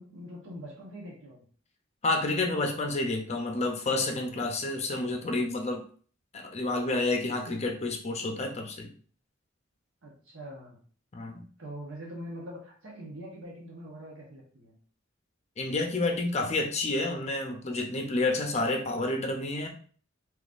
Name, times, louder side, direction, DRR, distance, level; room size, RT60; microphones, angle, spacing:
voice 1, 0.0-1.4 10.0-10.8 11.6-14.7, equal, 85° right, 1.0 m, -43 dB
voice 2, 2.0-5.8 6.3-8.9 11.1-11.4 15.6-19.7, left 2 dB, 35° left, 0.6 m, -29 dB
3.6 x 3.0 x 2.5 m
head